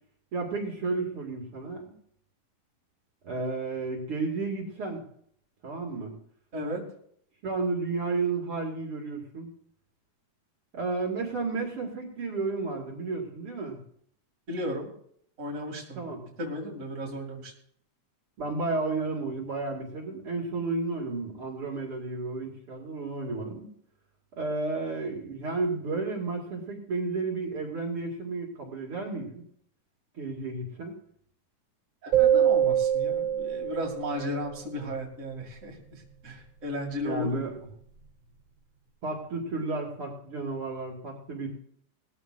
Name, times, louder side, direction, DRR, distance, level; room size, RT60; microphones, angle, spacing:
voice 1, 0.3-1.9 3.2-5.0 5.6-6.1 7.4-9.5 10.7-13.8 16.0-16.2 18.4-23.7 24.4-29.4 30.1-31.0 37.0-37.5 39.0-41.5, right 3 dB, 45° right, -2 dB, 2.8 m, -32 dB
voice 2, 14.5-14.9 15.4-16.0 16.4-17.5 32.0-37.5, equal, 25° right, 0 dB, 2.5 m, -35 dB
sound 1, 32.1-34.4, right 10 dB, 65° right, 3.9 m, -24 dB
19.5 x 14.0 x 2.5 m, 0.66 s
omnidirectional pair, 3.6 m